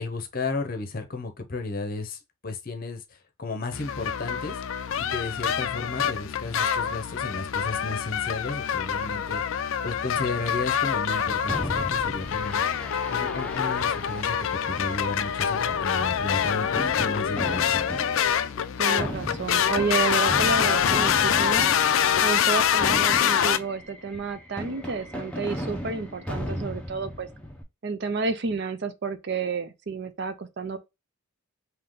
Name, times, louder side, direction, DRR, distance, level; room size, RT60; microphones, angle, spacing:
voice 1, 0.0-3.0 3.4-4.6 5.0-12.6 13.1-17.7, left 3 dB, 40° left, 0.7 m, -33 dB
sound 1, 3.7-23.6, left 8 dB, 65° left, 0.4 m, -25 dB
Fireworks, 11.5-27.6, equal, 5° left, 0.6 m, -37 dB
voice 2, 18.8-21.7 22.2-27.3 27.8-30.8, right 4 dB, 50° right, 0.5 m, -30 dB
3.7 x 2.8 x 3.7 m
head